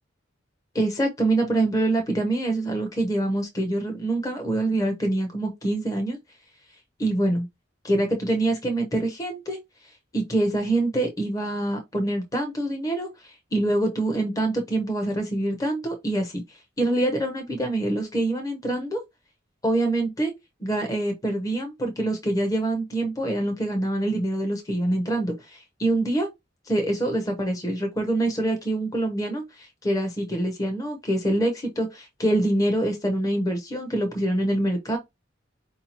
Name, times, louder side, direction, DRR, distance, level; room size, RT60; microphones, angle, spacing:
voice 1, 0.7-6.2 7.0-7.5 7.8-9.6 10.1-19.0 19.6-20.3 20.6-26.3 26.7-35.0, right 1 dB, 20° left, 0.7 m, -25 dB
4.5 x 2.7 x 2.8 m
head